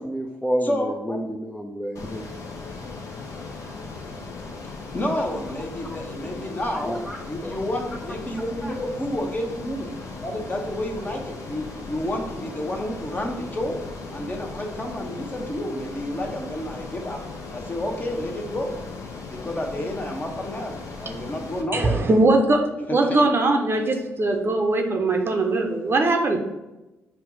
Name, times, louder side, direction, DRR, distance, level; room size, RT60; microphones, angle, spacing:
voice 1, 0.0-2.2 6.7-7.2 7.4-7.6 8.6-8.7, equal, 5° left, 1 dB, 0.5 m, -29 dB
voice 2, 0.6-1.3 4.6-9.9 10.2-13.8 14.1-17.2 17.5-18.7 19.3-22.0 22.9-23.2, left 1 dB, 25° left, 2 dB, 0.9 m, -30 dB
Ocean, 2.0-21.6, left 3 dB, 55° left, 0.7 m, -37 dB
voice 3, 21.7-22.6 22.9-26.5, right 2 dB, 35° right, 3 dB, 0.7 m, -21 dB
5.6 x 2.2 x 3.9 m, 1.0 s
figure-of-eight pair, 40°, 7 cm